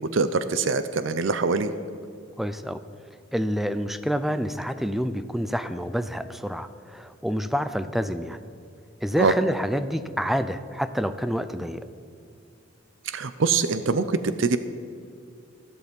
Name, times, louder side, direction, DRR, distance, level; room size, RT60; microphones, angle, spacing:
voice 1, 0.0-1.7 9.2-9.3 13.0-14.6, right 4 dB, 70° right, 12 dB, 0.6 m, -24 dB
voice 2, 2.4-2.8 3.3-8.4 9.0-11.9, equal, ahead, 12 dB, 0.5 m, -28 dB
13.5 x 12.0 x 5.3 m, 2.5 s
head